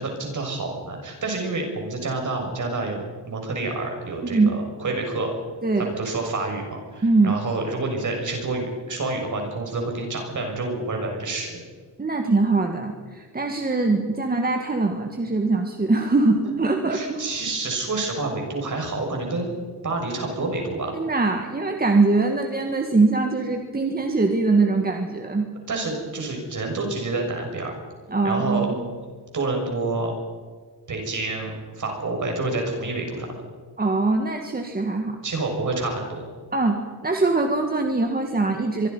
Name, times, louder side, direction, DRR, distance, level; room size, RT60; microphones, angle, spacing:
voice 1, 0.0-5.3 5.8-11.5 16.9-19.6 19.8-21.0 25.7-27.7 28.2-28.7 29.3-30.1 30.9-33.3 35.2-36.2, right 3 dB, 45° right, 2 dB, 6.6 m, -28 dB
voice 2, 4.2-4.6 5.6-5.9 7.0-7.4 12.0-17.2 20.9-25.5 28.1-28.9 33.8-35.2 36.5-38.9, right 3 dB, 20° right, 4 dB, 1.8 m, -22 dB
25.0 x 23.0 x 5.5 m, 1.5 s
wide cardioid pair, 165°, 41 cm